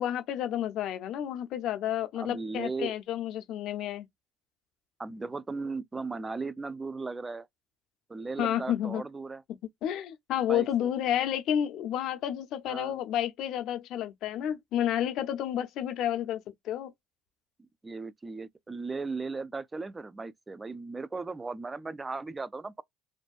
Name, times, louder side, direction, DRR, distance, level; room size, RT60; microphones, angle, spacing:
voice 1, 0.0-4.1 8.4-9.0 9.8-16.9, left 10 dB, 65° left, 0.5 m, -30 dB
voice 2, 2.1-3.0 5.0-7.5 8.1-9.4 10.5-10.9 12.7-13.0 17.8-22.8, right 3 dB, 20° right, 0.3 m, -37 dB
2.5 x 2.2 x 2.4 m
supercardioid pair, 85°, 0 cm